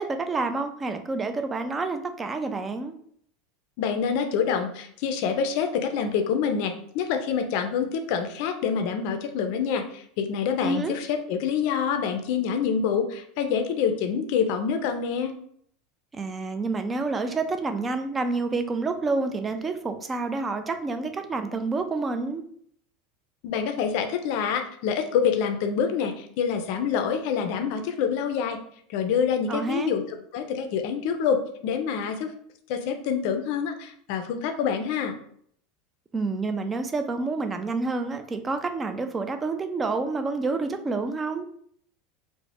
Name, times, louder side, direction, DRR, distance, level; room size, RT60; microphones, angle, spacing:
voice 1, 0.0-2.9 10.6-10.9 16.1-22.4 29.5-29.9 36.1-41.5, right 3 dB, 20° right, 7 dB, 0.3 m, -28 dB
voice 2, 3.8-15.4 23.4-28.6 28.9-32.3 32.7-35.1, left 7 dB, 65° left, 6 dB, 0.4 m, -26 dB
2.4 x 2.0 x 3.3 m, 0.64 s
supercardioid pair, 120°, 0 cm